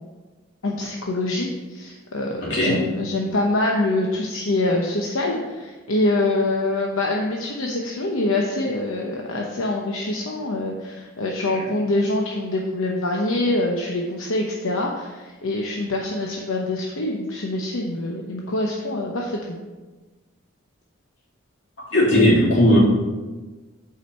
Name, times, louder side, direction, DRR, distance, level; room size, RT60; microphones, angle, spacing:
voice 1, 0.6-19.6, left 2 dB, 80° left, 0 dB, 0.9 m, -25 dB
voice 2, 21.9-22.8, left 1 dB, 60° left, -6 dB, 3.0 m, -17 dB
8.3 x 4.9 x 5.5 m, 1.2 s
head